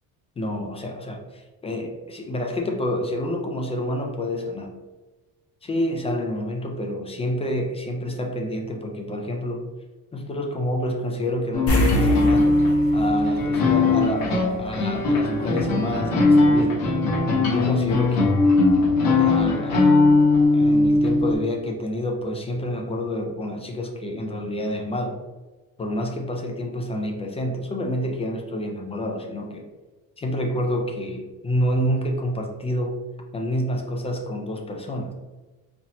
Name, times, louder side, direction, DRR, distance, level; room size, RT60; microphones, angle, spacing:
voice 1, 0.4-1.2 1.6-4.8 5.6-9.7 10.1-12.5 12.9-16.9 17.4-18.4 19.2-20.1 20.5-25.2 25.8-29.7 30.2-33.0 33.3-35.1, left 1 dB, 20° left, 2 dB, 0.3 m, -28 dB
sound 1, 11.5-21.3, left 3 dB, 85° left, 1.2 m, -19 dB
sound 2, 11.7-14.5 14.8-14.9 17.8-17.9 18.3-18.4, right 1 dB, 45° left, 1.0 m, -26 dB
4.1 x 2.9 x 2.8 m, 1.2 s
cardioid pair, 155°, 34 cm